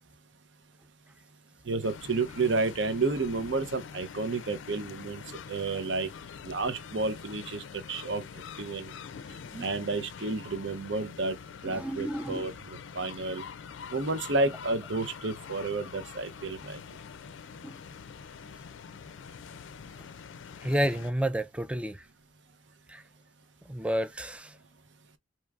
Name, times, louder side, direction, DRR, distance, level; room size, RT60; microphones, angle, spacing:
voice 1, 1.6-5.2 5.5-6.1 6.4-8.2 8.6-8.9 9.6-11.4 11.6-12.5 13.0-13.4 13.9-16.8, right 3 dB, 70° right, 0.7 m, -31 dB
sound 1, 1.8-21.1, left 7 dB, 80° left, 0.4 m, -45 dB
voice 2, 11.6-12.5 17.6-17.7 20.6-22.0 22.9-23.0 23.7-24.5, equal, 5° right, 0.3 m, -31 dB
4.6 x 2.9 x 2.4 m
head